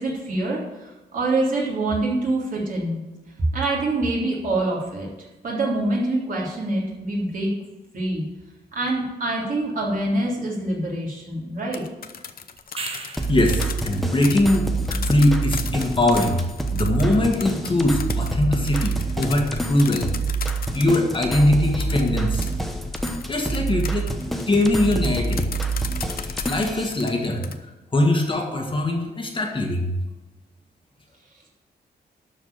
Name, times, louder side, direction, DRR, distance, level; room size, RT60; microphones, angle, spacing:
voice 1, 0.0-3.0 3.5-7.5 7.9-8.2 8.7-11.8, right 2 dB, 50° right, -4 dB, 3.5 m, -25 dB
sound 1, 11.6-21.2 21.8-27.5, left 7 dB, 60° left, 0.8 m, -36 dB
sound 2, 12.6-13.5 18.2-18.3, right 4 dB, 35° right, 1.3 m, -34 dB
voice 2, 12.7-16.5 16.7-20.1 20.7-22.5 22.9-23.0 23.3-25.4 26.4-27.5 27.9-30.0, left 1 dB, 30° left, 2 dB, 1.5 m, -22 dB
sound 3, 13.2-26.9, right 3 dB, ahead, 0.9 m, -27 dB
12.5 x 4.8 x 8.0 m, 1.1 s
wide cardioid pair, 160°, 17 cm